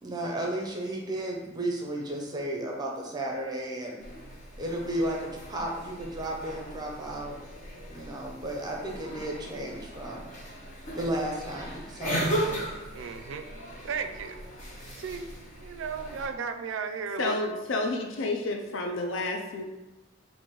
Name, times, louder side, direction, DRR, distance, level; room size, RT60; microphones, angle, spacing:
voice 1, 0.0-4.0 4.6-7.4 7.9-10.2 10.9-12.3, right 1 dB, 20° right, -1 dB, 0.6 m, -33 dB
sound 1, 4.0-16.3, right 1 dB, 40° left, 1.0 m, -37 dB
voice 2, 12.9-13.5 13.8-14.4 15.0-17.6, right 5 dB, 65° right, 8 dB, 0.4 m, -35 dB
voice 3, 17.2-19.6, left 2 dB, 65° left, 3 dB, 0.4 m, -30 dB
3.8 x 2.6 x 4.5 m, 1.1 s
head